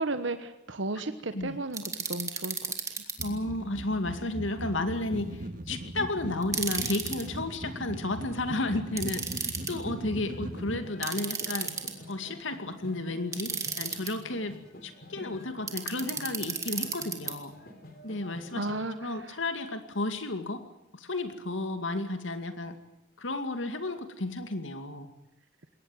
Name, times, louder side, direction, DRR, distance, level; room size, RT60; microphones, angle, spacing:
voice 1, 0.0-2.6 18.5-19.1, right 2 dB, 80° right, 10 dB, 1.2 m, -33 dB
sound 1, 1.7-3.3 6.4-7.2 9.0-9.7 11.0-12.1 13.3-14.1 15.7-17.3, right 5 dB, 15° right, 2.3 m, -33 dB
voice 2, 3.2-11.7 12.1-17.5 18.0-20.6 20.9-22.8 23.2-25.1, left 2 dB, 90° left, 8 dB, 2.3 m, -33 dB
sound 2, 3.2-10.8, right 1 dB, 45° right, 1.7 m, -39 dB
sound 3, 10.2-18.7, left 1 dB, 50° left, 3.5 m, -47 dB
21.5 x 18.5 x 9.1 m, 0.84 s
head